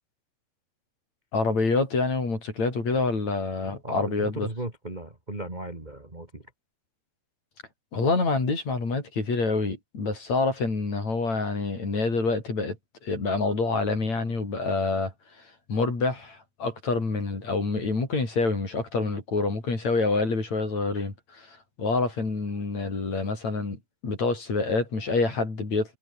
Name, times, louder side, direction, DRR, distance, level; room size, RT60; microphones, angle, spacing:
voice 1, 1.3-4.5 7.9-12.8 13.0-15.1 15.4-23.8 24.0-26.0, left 3 dB, 35° left, 7.3 m, -27 dB
voice 2, 3.8-6.5, right 2 dB, 10° right, 2.3 m, -36 dB
omnidirectional pair, 5.3 m